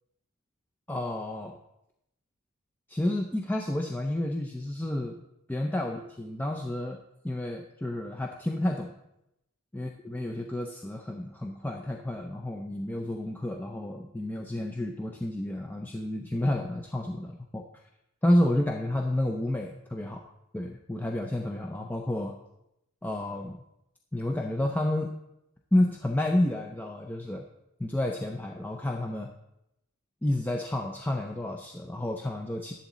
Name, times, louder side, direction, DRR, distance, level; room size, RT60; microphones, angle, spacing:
voice 1, 0.9-1.6 2.9-5.1 5.5-8.9 9.7-17.8 18.2-20.2 20.5-22.4 23.0-23.6 24.1-25.1 25.7-27.4 27.8-29.3 30.2-32.7, left 1 dB, 10° left, 2 dB, 0.5 m, -30 dB
11.5 x 4.0 x 7.3 m, 0.84 s
head